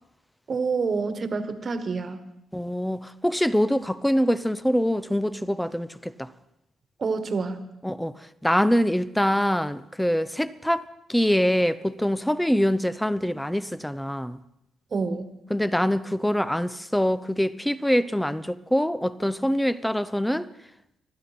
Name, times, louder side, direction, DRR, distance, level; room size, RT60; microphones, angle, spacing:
voice 1, 0.5-2.3 7.0-7.6 14.9-15.2, right 4 dB, 45° right, 1.5 m, -27 dB
voice 2, 2.5-6.3 7.8-14.4 15.5-20.5, equal, 5° left, 0.8 m, -24 dB
25.0 x 12.5 x 4.3 m
hypercardioid pair, 45°, 0 cm